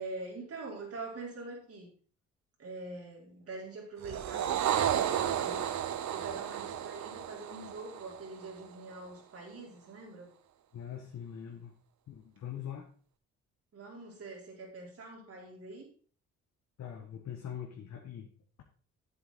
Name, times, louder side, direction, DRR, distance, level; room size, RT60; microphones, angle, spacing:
voice 1, 0.0-1.9 2.6-5.7 6.1-10.3 13.7-15.9, right 3 dB, 50° right, -2 dB, 4.2 m, -44 dB
sound 1, 4.0-8.6, right 10 dB, 70° right, 0.9 m, -33 dB
voice 2, 10.7-11.8 12.1-12.9 16.8-18.3, left 9 dB, 60° left, 2 dB, 1.5 m, -42 dB
8.2 x 8.1 x 4.2 m, 0.43 s
cardioid pair, 90°, 30 cm